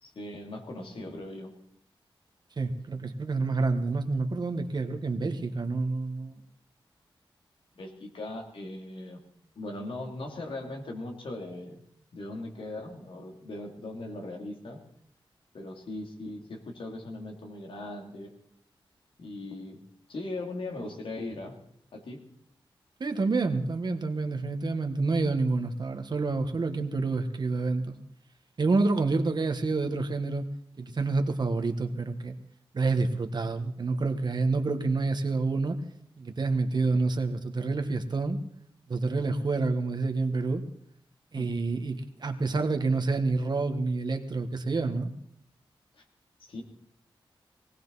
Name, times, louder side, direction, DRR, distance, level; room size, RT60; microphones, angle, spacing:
voice 1, 0.0-1.5 7.7-9.2 9.5-11.8 12.1-14.8 15.5-18.3 19.2-19.8 20.1-21.5 21.9-22.2 41.3-41.5 45.9-46.0 46.5-46.6, left 2 dB, 80° left, 1 dB, 3.1 m, -39 dB
voice 2, 2.6-6.4 23.0-28.0 28.6-30.4 30.8-32.4 32.7-35.8 36.2-38.4 38.9-40.6 41.3-45.1, right 3 dB, 55° right, 7 dB, 1.6 m, -28 dB
19.0 x 17.0 x 4.2 m, 0.70 s
wide cardioid pair, 85°, 9 cm